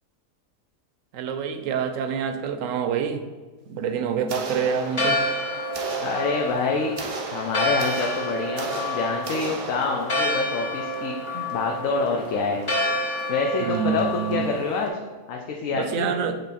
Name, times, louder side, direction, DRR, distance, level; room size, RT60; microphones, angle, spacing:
voice 1, 1.1-3.2 3.7-5.2 11.3-11.4 13.6-14.5 15.7-16.3, right 7 dB, 75° right, 8 dB, 1.0 m, -27 dB
sound 1, 4.3-5.3 5.7-10.2, right 3 dB, 45° right, 0.4 m, -35 dB
Church bell, 4.7-14.9, left 1 dB, 30° left, 0.7 m, -29 dB
voice 2, 6.0-6.9 7.3-11.2 11.5-12.6 12.9-13.0 13.3-14.9 15.3-16.2, left 4 dB, 75° left, 0 dB, 1.1 m, -26 dB
8.0 x 3.4 x 4.1 m, 1.4 s
omnidirectional pair, 1.4 m